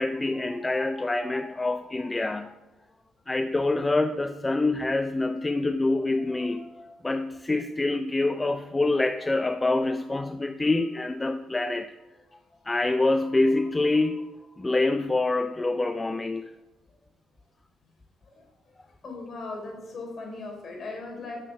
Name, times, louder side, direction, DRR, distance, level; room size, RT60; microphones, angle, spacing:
voice 1, 0.0-2.5 3.3-11.9 12.7-14.3 14.6-16.5, left 2 dB, 20° left, 8 dB, 0.4 m, -26 dB
voice 2, 18.2-18.8 19.0-21.4, left 3 dB, 50° left, 0 dB, 4.0 m, -38 dB
9.0 x 6.6 x 6.2 m, 1.1 s
cardioid pair, 90°, 0 cm